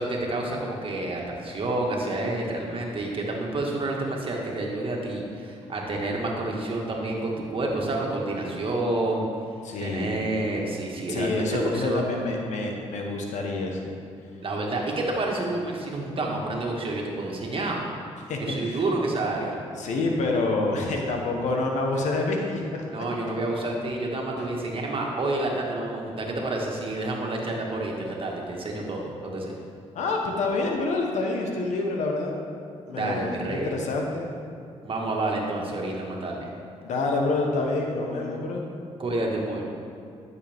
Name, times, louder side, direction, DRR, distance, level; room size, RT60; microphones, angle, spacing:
voice 1, 0.0-9.3 9.8-12.0 14.4-17.8 18.4-19.6 22.9-29.5 32.9-33.7 34.8-36.5 39.0-39.6, right 2 dB, 45° right, -1 dB, 1.8 m, -29 dB
voice 2, 9.6-10.1 11.1-13.9 18.3-18.8 19.8-22.8 24.4-24.5 29.9-32.3 32.9-33.3 33.6-34.3 36.8-38.6, left 3 dB, 80° left, 1 dB, 1.2 m, -27 dB
12.0 x 6.7 x 3.6 m, 2.4 s
supercardioid pair, 65°, 12 cm